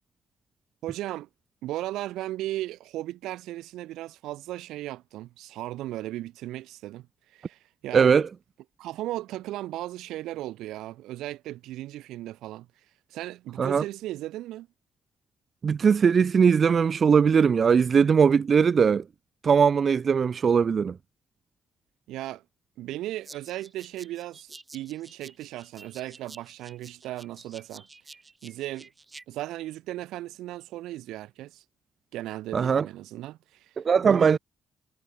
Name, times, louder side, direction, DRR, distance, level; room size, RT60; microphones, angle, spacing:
voice 1, 0.8-1.3 1.6-7.1 7.3-8.1 8.8-12.7 13.1-14.7 22.1-22.4 22.8-27.9 28.4-28.9 29.3-31.6 32.1-33.7 34.0-34.4, right 15 dB, 90° right, 7.2 m, -36 dB
voice 2, 7.9-8.3 13.6-13.8 15.6-19.0 19.4-21.0 32.5-32.9 33.8-34.4, right 6 dB, 45° right, 0.3 m, -20 dB
sound 1, 23.2-29.2, right 3 dB, 25° right, 4.3 m, -50 dB
cardioid pair, 90°, 0 cm